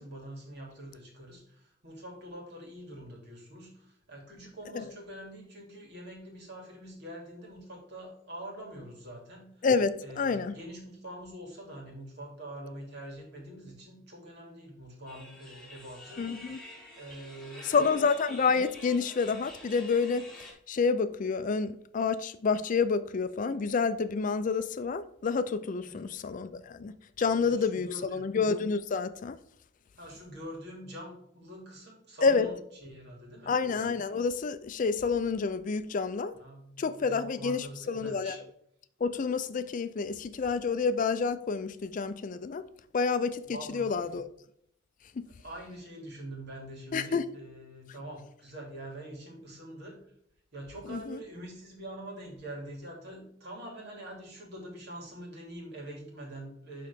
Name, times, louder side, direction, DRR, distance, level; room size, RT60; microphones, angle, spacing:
voice 1, 0.0-9.5 10.0-16.2 17.0-18.0 25.8-26.0 27.3-28.2 30.0-33.5 36.3-38.4 43.5-43.9 45.4-50.0 50.5-56.9, right 1 dB, 60° right, 2.7 m, -45 dB
voice 2, 9.6-10.6 16.2-16.6 17.6-29.4 32.2-32.5 33.5-36.3 36.8-38.4 39.0-42.6 42.9-44.3 45.2-45.3 46.9-47.2 50.9-51.2, left 5 dB, 40° left, 0.4 m, -29 dB
sound 1, 15.1-20.5, left 1 dB, 5° left, 2.0 m, -48 dB
11.5 x 3.8 x 3.6 m
head